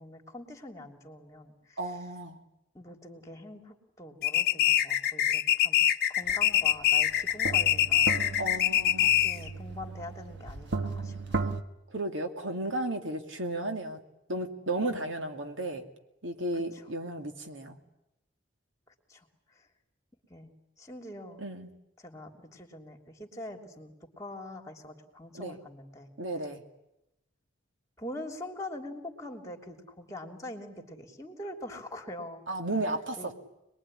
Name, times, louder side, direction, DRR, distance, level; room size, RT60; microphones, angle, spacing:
voice 1, 0.0-1.8 2.7-5.8 6.1-8.1 9.0-11.4 14.8-15.1 16.5-16.8 19.1-19.2 19.5-19.6 20.3-20.5 20.8-21.4 22.0-26.1 28.0-32.4 33.2-33.3, left 1 dB, 15° left, 4 dB, 3.1 m, -44 dB
voice 2, 1.8-2.4 8.4-9.2 11.9-14.0 14.3-15.8 16.2-17.8 21.4-21.7 25.3-25.6 26.2-26.6 32.5-33.3, right 2 dB, 85° right, 5 dB, 2.5 m, -34 dB
sound 1, 4.2-9.5, left 11 dB, 50° left, 1.0 m, -24 dB
sound 2, 6.3-6.4 6.8-11.6, right 3 dB, 60° right, 1.5 m, -35 dB
26.5 x 21.5 x 10.0 m, 0.88 s
head